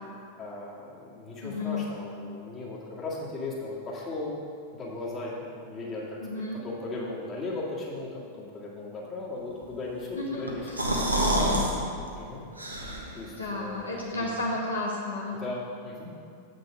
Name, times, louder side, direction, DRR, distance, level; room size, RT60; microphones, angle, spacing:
voice 1, 0.4-4.4 4.7-6.0 6.3-10.8 12.1-12.5 13.1-14.3 15.3-16.1, left 2 dB, 25° left, -5 dB, 2.2 m, -37 dB
voice 2, 1.4-1.9 6.2-6.6 9.8-11.7 13.3-15.4, left 2 dB, 75° left, -4 dB, 1.5 m, -33 dB
sound 1, 10.5-11.7 12.1-12.2 12.6-13.2, right 1 dB, 85° right, 1.2 m, -27 dB
8.4 x 6.7 x 5.1 m, 2.4 s
figure-of-eight pair, 90°, 0 cm